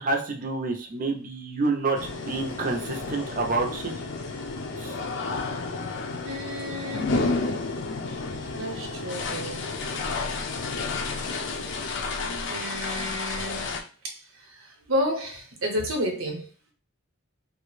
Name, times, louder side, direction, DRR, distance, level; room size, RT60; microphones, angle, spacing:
voice 1, 0.0-3.9 4.8-4.9, right 3 dB, 40° right, 3 dB, 0.5 m, -28 dB
sound 1, 1.9-13.8, left 3 dB, 65° left, 0.4 m, -31 dB
voice 2, 6.2-7.3 8.3-9.7 10.0-10.6 11.0-11.1 12.4-13.7 14.1-16.5, equal, 85° right, 2 dB, 0.8 m, -32 dB
2.4 x 2.1 x 3.0 m, 0.40 s
head